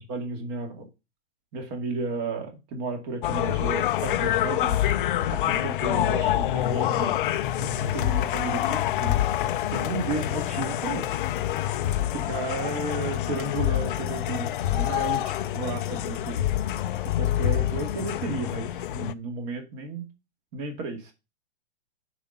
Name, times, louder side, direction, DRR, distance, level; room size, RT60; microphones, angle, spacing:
voice 1, 0.1-0.9 1.5-4.9 5.3-7.2 7.6-11.0 12.1-16.4 17.0-20.1 20.5-21.1, right 3 dB, 35° right, 2.1 m, -33 dB
sound 1, 3.2-19.1, left 12 dB, 50° left, 0.7 m, -26 dB
7.2 x 5.2 x 5.5 m
hypercardioid pair, 150°, 33 cm